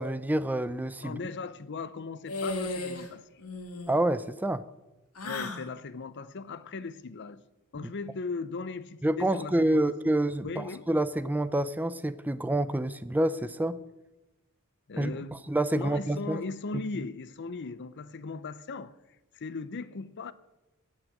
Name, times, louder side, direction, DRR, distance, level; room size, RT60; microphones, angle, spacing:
voice 1, 0.0-1.2 3.9-4.6 9.0-13.8 15.0-16.4, right 1 dB, 10° right, 0.4 m, -28 dB
voice 2, 1.0-3.2 5.2-7.4 7.7-9.9 10.4-10.9 14.9-15.4 15.7-18.9 19.3-20.3, left 4 dB, 55° left, 0.6 m, -38 dB
sound 1, 2.3-3.1 3.4-3.9 5.1-5.7, left 2 dB, 90° left, 2.1 m, -34 dB
16.5 x 6.3 x 9.4 m
head